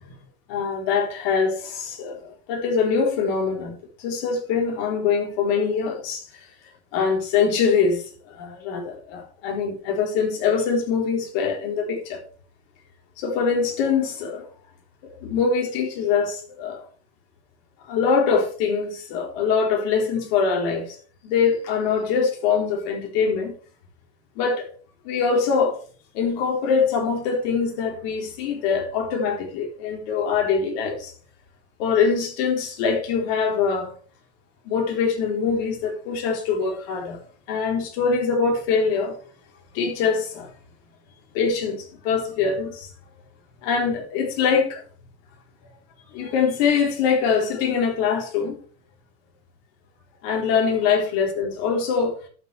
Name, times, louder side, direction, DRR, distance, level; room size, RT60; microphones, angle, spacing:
voice 1, 0.5-2.2 2.5-6.2 6.9-12.2 13.2-14.4 15.2-16.8 17.9-21.0 21.2-23.5 24.4-24.7 25.0-25.8 26.1-31.1 31.8-33.9 34.7-37.2 37.5-39.2 39.7-40.5 41.3-41.8 42.0-42.9 43.6-44.8 46.1-48.5 50.2-52.2, left 5 dB, 50° left, 4.2 m, -23 dB
11.5 x 8.3 x 3.5 m
supercardioid pair, 140°, 34 cm